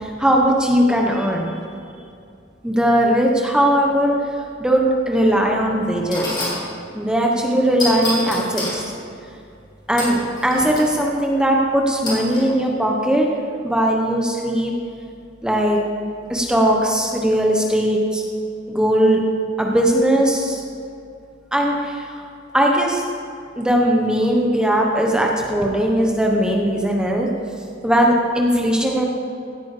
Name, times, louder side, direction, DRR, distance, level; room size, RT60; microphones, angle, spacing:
voice 1, 0.0-1.5 2.6-4.1 4.6-6.3 6.9-8.8 9.9-13.3 13.6-14.7 15.4-15.8 16.3-18.2 18.7-19.2 19.6-20.6 21.5-22.2 22.5-23.0 23.6-27.3 27.8-29.1, equal, 5° right, 0 dB, 1.1 m, -19 dB
sound 1, 5.4-5.5 6.1-6.6 7.8-8.8 10.0-10.9 12.0-12.5, left 1 dB, 25° left, 3.6 m, -27 dB
16.5 x 8.9 x 5.1 m, 2.5 s
head